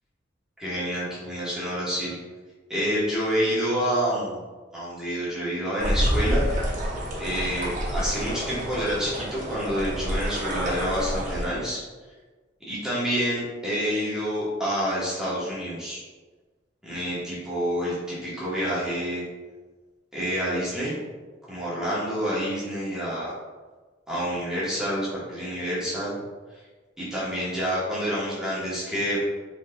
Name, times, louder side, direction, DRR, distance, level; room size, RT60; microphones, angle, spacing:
voice 1, 0.6-2.2 2.7-4.4 4.7-6.5 7.2-11.8 12.7-16.0 16.8-19.2 20.1-21.0 21.5-23.3 24.1-26.2 27.0-29.2, equal, 5° right, -9 dB, 1.0 m, -28 dB
sound 1, 5.8-11.5, equal, 45° right, 0.8 m, -28 dB
3.9 x 3.9 x 2.2 m, 1.3 s
head